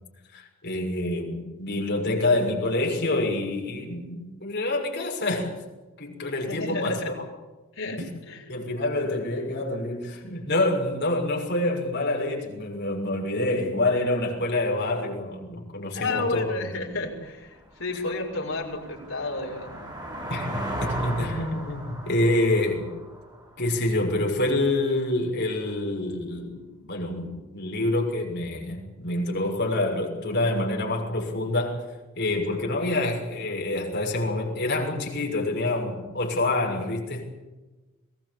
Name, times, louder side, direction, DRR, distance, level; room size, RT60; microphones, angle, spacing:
voice 1, 0.3-5.6 6.0-7.2 8.0-8.1 8.5-16.6 20.3-22.9 23.6-31.9 32.2-37.2, left 2 dB, 55° left, 1 dB, 6.4 m, -27 dB
voice 2, 6.5-7.1 7.7-8.0 8.3-8.5 15.9-19.8, left 3 dB, 70° left, 1 dB, 6.5 m, -31 dB
sound 1, 16.9-17.0 17.5-24.1, right 1 dB, 20° right, 6.3 m, -37 dB
23.0 x 19.0 x 8.6 m, 1.1 s
head